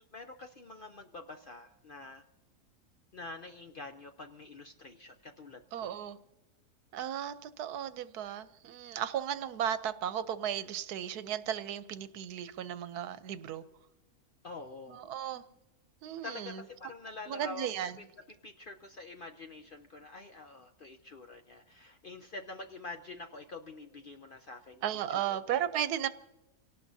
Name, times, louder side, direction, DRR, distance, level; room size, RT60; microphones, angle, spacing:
voice 1, 0.1-2.2 3.1-5.9 14.4-15.0 16.2-17.7 18.0-18.1 18.4-24.9 25.1-25.4, left 3 dB, 55° left, 6 dB, 0.6 m, -46 dB
voice 2, 5.7-6.2 6.9-13.6 14.9-15.4 16.0-16.6 17.3-18.0 24.8-26.1, right 10 dB, 85° right, 13 dB, 1.2 m, -35 dB
29.0 x 18.0 x 2.7 m, 1.0 s
omnidirectional pair, 1.6 m